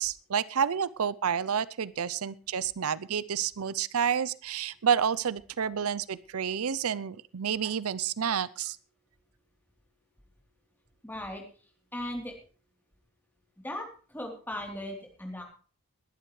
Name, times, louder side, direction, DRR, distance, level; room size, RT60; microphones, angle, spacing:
voice 1, 0.0-8.8, right 7 dB, 85° right, 19 dB, 0.6 m, -29 dB
voice 2, 11.0-12.4 13.6-15.4, left 1 dB, 10° left, 1 dB, 3.4 m, -38 dB
21.0 x 11.0 x 3.2 m, 0.39 s
head